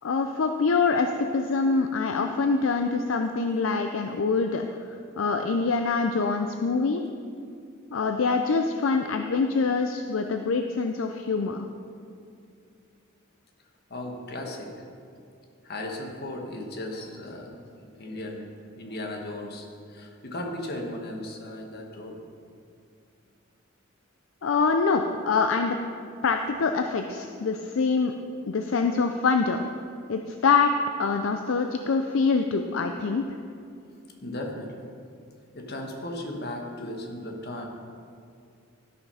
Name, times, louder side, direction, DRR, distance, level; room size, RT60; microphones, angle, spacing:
voice 1, 0.0-7.0 7.9-11.7 24.4-25.8 26.2-28.1 28.5-29.6 30.1-30.7 31.0-33.2, left 4 dB, 70° left, 5 dB, 0.5 m, -25 dB
voice 2, 13.9-14.7 15.6-22.2 27.3-27.4 28.8-29.0 30.0-30.2 34.2-34.9 35.5-37.7, left 1 dB, 50° left, 1 dB, 1.4 m, -37 dB
12.5 x 5.8 x 5.6 m, 2.4 s
head